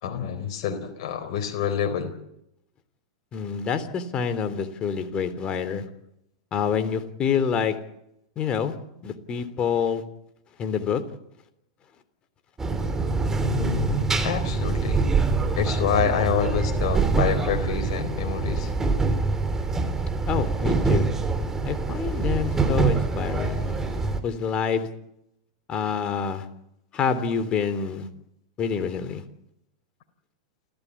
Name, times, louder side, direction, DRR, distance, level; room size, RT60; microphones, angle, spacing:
voice 1, 0.0-2.1 13.4-15.0 15.6-18.7, left 8 dB, 55° left, 4 dB, 4.1 m, -27 dB
voice 2, 3.3-5.8 6.5-7.8 8.3-8.7 9.0-10.0 10.6-11.0 20.3-21.1 21.6-24.9 25.7-26.5 26.9-28.1 28.6-29.2, left 6 dB, 30° left, 10 dB, 3.3 m, -27 dB
sound 1, 12.6-24.2, right 4 dB, 15° right, 3.5 m, -25 dB
29.0 x 15.0 x 8.5 m, 0.81 s
hypercardioid pair, 105°, 3 cm